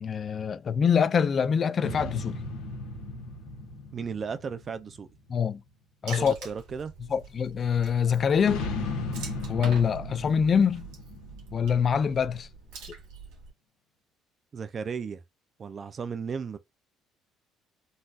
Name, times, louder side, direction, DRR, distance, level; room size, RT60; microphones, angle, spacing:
voice 1, 0.0-2.4 5.3-5.6 6.0-6.3 7.1-8.6 9.5-10.9 11.5-12.5, left 7 dB, 40° left, 0.3 m, -24 dB
sound 1, 1.8-5.5 8.4-12.2, left 3 dB, 90° left, 1.0 m, -36 dB
voice 2, 3.9-5.1 6.2-6.9 14.5-15.2 15.6-16.6, right 6 dB, 35° right, 0.4 m, -35 dB
Water / Splash splatter, 6.1-13.5, right 6 dB, 85° right, 1.6 m, -44 dB
3.9 x 2.6 x 2.4 m
cardioid pair, 105°, 0 cm